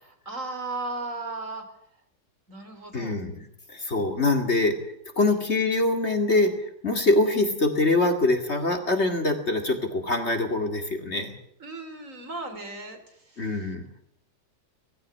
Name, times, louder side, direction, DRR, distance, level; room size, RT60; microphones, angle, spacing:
voice 1, 0.0-1.6 2.5-3.2 5.2-5.4 11.6-13.7, right 2 dB, 50° right, 6 dB, 3.8 m, -36 dB
voice 2, 2.9-4.7 5.2-6.5 6.8-11.4 13.4-13.9, left 2 dB, 40° left, 6 dB, 2.5 m, -24 dB
19.0 x 16.5 x 9.4 m, 0.73 s
omnidirectional pair, 1.8 m